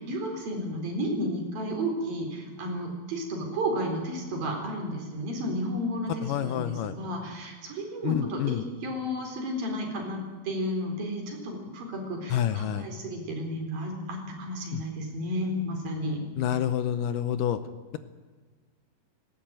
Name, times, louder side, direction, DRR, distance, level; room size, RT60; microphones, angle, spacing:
voice 1, 0.0-10.2 10.4-16.2, equal, 70° right, 1 dB, 5.9 m, -32 dB
voice 2, 6.2-6.9 8.0-8.6 12.3-12.9 14.7-14.8 16.4-17.6, left 10 dB, 75° left, 11 dB, 2.2 m, -28 dB
19.0 x 17.5 x 9.0 m, 1.4 s
omnidirectional pair, 4.3 m